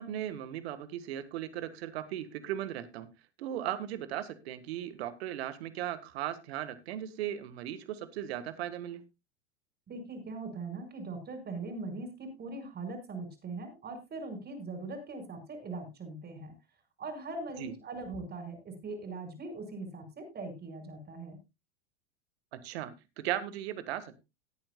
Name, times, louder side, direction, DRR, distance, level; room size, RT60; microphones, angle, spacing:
voice 1, 0.0-3.1 3.4-9.0 17.6-17.7 22.5-24.2, right 11 dB, 70° right, 13 dB, 1.7 m, -37 dB
voice 2, 9.9-16.5 17.0-21.4, right 3 dB, 30° right, 7 dB, 5.8 m, -41 dB
19.0 x 9.1 x 2.3 m, 0.25 s
hypercardioid pair, 95°, 33 cm